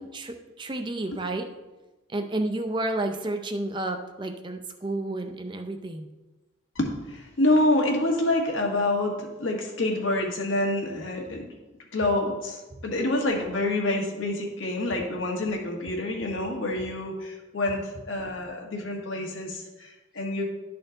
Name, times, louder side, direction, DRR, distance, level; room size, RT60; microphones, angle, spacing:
voice 1, 0.1-1.5 2.1-6.1, right 2 dB, 25° right, 6 dB, 0.5 m, -31 dB
voice 2, 6.7-11.5 11.9-20.5, left 2 dB, 70° left, 0 dB, 1.5 m, -27 dB
11.5 x 4.2 x 3.8 m, 1.1 s
head